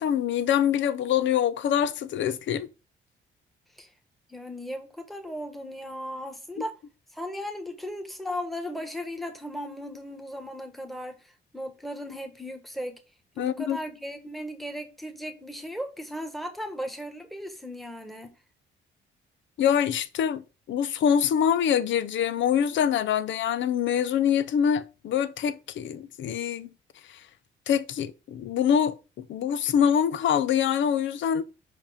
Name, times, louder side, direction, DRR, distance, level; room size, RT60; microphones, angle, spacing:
voice 1, 0.0-2.7 13.4-13.8 19.6-26.7 27.7-31.4, left 8 dB, 70° left, 0.7 m, -25 dB
voice 2, 4.3-6.7 7.1-13.0 13.4-18.3, equal, ahead, 1.5 m, -36 dB
5.3 x 5.1 x 5.0 m
cardioid pair, 85°, 20 cm